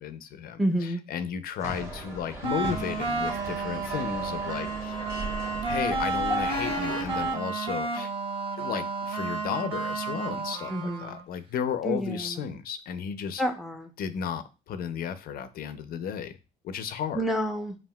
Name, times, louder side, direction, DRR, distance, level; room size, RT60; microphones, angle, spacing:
voice 1, 0.0-5.0 5.6-8.1 8.6-13.4 14.0-16.4 16.6-17.2, left 8 dB, 60° left, 11 dB, 0.5 m, -34 dB
voice 2, 0.6-1.0 10.7-11.2 11.8-12.4 13.4-13.9 17.2-17.8, equal, ahead, 5 dB, 0.6 m, -29 dB
sound 1, 1.6-7.3, right 1 dB, 15° right, 1.2 m, -37 dB
sound 2, 2.4-11.2, right 3 dB, 30° right, 0.9 m, -31 dB
5.4 x 2.4 x 2.2 m, 0.30 s
cardioid pair, 110°, 17 cm